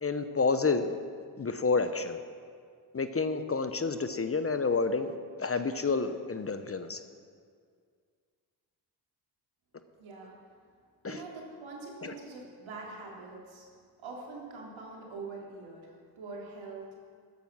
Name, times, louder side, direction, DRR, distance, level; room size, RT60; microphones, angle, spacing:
voice 1, 0.0-1.0 1.4-2.2 2.9-5.1 5.4-7.0 11.0-11.2 12.0-12.1, left 4 dB, 30° left, 9 dB, 0.9 m, -29 dB
voice 2, 10.0-10.3 11.1-13.7 14.0-17.0, right 3 dB, 70° right, -3 dB, 3.5 m, -44 dB
13.5 x 9.3 x 6.2 m, 2.1 s
supercardioid pair, 50°, 49 cm